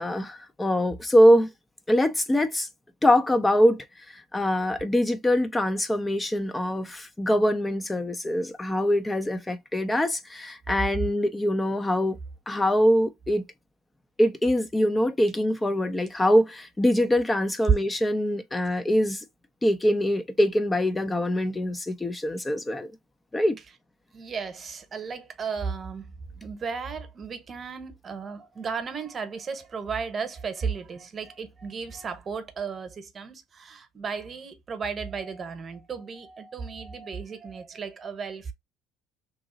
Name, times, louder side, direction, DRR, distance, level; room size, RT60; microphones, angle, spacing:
voice 1, 0.0-1.5 1.9-2.7 3.0-12.2 12.5-13.4 14.2-19.2 19.6-22.9 23.3-23.6, equal, 15° left, 0.4 m, -23 dB
voice 2, 24.1-26.1 26.4-38.5, right 5 dB, 35° right, 0.9 m, -35 dB
2.9 x 2.6 x 3.7 m
hypercardioid pair, 70°, 0 cm